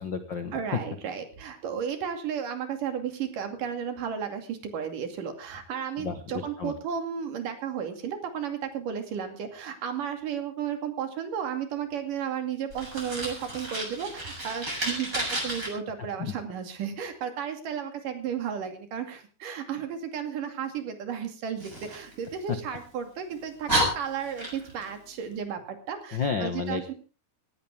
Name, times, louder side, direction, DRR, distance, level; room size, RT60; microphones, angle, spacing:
voice 1, 0.0-0.5 6.0-6.7 16.2-16.3 26.1-26.9, left 5 dB, 80° left, 8 dB, 1.0 m, -32 dB
voice 2, 0.5-26.9, right 8 dB, 60° right, 6 dB, 3.9 m, -33 dB
Fire, 12.7-15.7 21.6-22.8 23.3-23.4 23.7-24.9, right 1 dB, 20° right, 7.0 m, -31 dB
18.0 x 16.0 x 3.6 m, 0.34 s
omnidirectional pair, 4.4 m